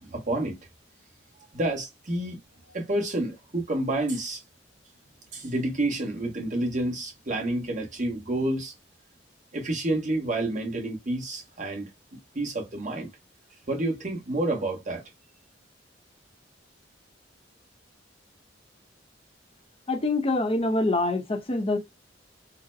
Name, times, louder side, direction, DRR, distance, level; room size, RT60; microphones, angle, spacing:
voice 1, 0.0-0.6 1.5-2.4 2.7-4.4 5.3-8.7 9.5-11.9 12.3-13.1 13.7-15.0, right 1 dB, 45° right, 1.1 m, -29 dB
voice 2, 19.9-21.8, left 2 dB, 30° left, 0.7 m, -25 dB
4.0 x 2.1 x 2.6 m
head